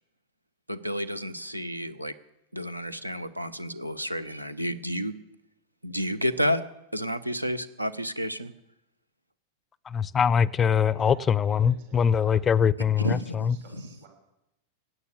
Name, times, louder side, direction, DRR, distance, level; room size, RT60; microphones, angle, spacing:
voice 1, 0.7-2.1 2.5-5.1 5.8-6.6 6.9-8.5 13.0-13.5, equal, 85° right, 14 dB, 0.8 m, -30 dB
voice 2, 9.9-13.6, left 7 dB, 20° left, 23 dB, 0.4 m, -23 dB
voice 3, 10.8-12.4 13.5-14.1, right 5 dB, 55° right, 2 dB, 5.7 m, -51 dB
17.0 x 9.5 x 6.9 m, 0.87 s
figure-of-eight pair, 90°, 0 cm